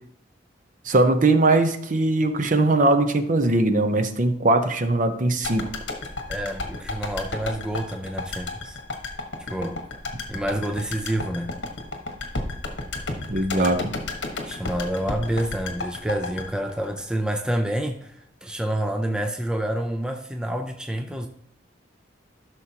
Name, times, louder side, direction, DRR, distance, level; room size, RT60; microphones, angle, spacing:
voice 1, 0.8-5.7 13.3-13.9, right 2 dB, 45° right, 0.8 m, -20 dB
sound 1, 5.4-17.6 17.9-18.0, left 2 dB, 70° left, 1.4 m, -33 dB
voice 2, 6.3-8.8 9.4-9.8 10.3-11.6 13.6-13.8 14.4-21.3, right 1 dB, 5° right, 0.5 m, -28 dB
13.0 x 6.3 x 2.9 m
head